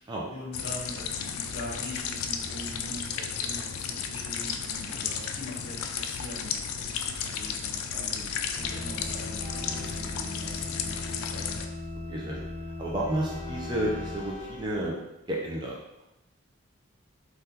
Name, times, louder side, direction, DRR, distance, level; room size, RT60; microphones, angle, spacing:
voice 1, 0.0-6.5 6.8-11.6, equal, 55° left, -5 dB, 1.1 m, -42 dB
sound 1, 0.5-11.7, left 7 dB, 85° left, 0.3 m, -34 dB
Train, 7.1-14.9, left 1 dB, 35° left, 1.5 m, -47 dB
sound 2, 8.6-14.2, left 2 dB, 20° left, 0.9 m, -38 dB
voice 2, 12.1-12.4 12.8-15.0 15.3-15.7, right 1 dB, 20° right, -3 dB, 0.4 m, -31 dB
3.5 x 2.3 x 2.8 m, 0.92 s
head